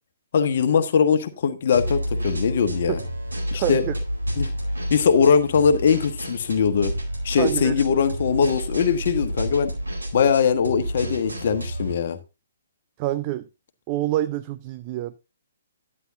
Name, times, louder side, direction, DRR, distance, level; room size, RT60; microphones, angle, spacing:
voice 1, 0.3-3.0 3.5-3.8 4.4-4.5 4.9-6.9 7.2-9.7 10.1-12.2, left 6 dB, 45° left, 1.3 m, -21 dB
sound 1, 1.7-11.9, equal, 75° right, 4.2 m, -30 dB
voice 2, 3.5-4.0 7.4-7.7 13.0-13.5 13.9-15.2, right 14 dB, 30° right, 0.5 m, -26 dB
11.5 x 9.8 x 2.6 m
figure-of-eight pair, 125°, 0 cm